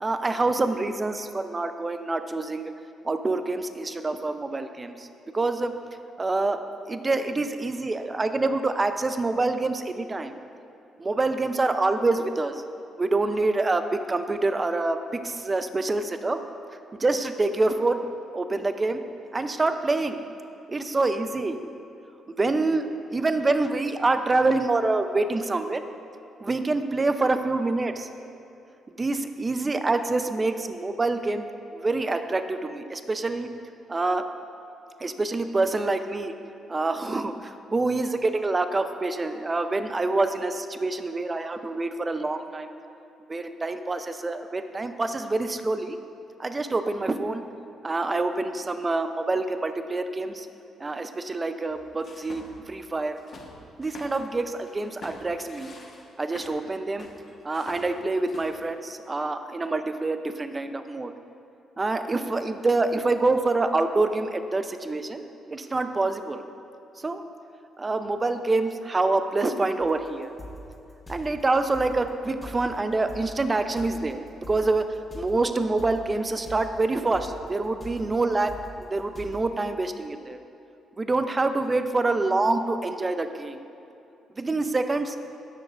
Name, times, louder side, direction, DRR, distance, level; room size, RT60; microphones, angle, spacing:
voice 1, 0.0-2.7 3.0-5.1 5.3-5.7 6.2-6.6 6.9-10.3 11.0-12.6 13.0-16.4 17.0-18.0 18.3-19.0 19.3-20.2 20.7-21.6 22.3-25.8 26.4-28.1 29.0-31.4 31.7-33.5 33.9-34.3 35.0-36.3 36.7-42.7 43.3-46.0 46.4-47.4 47.8-50.5 50.8-53.2 53.8-55.7 56.2-57.1 57.4-61.1 61.8-66.4 67.0-67.2 67.8-70.3 71.1-74.2 74.5-74.9 75.1-78.5 78.8-80.4 81.0-83.6 84.4-85.2, right 3 dB, 25° right, 8 dB, 0.5 m, -26 dB
sound 1, 51.7-52.7 53.0-54.3 54.7-56.6 57.0-58.6, left 2 dB, 50° left, 1.2 m, -46 dB
sound 2, 69.8-79.4, equal, 35° left, 1.5 m, -44 dB
16.5 x 6.2 x 2.5 m, 2.7 s
cardioid pair, 90°, 0 cm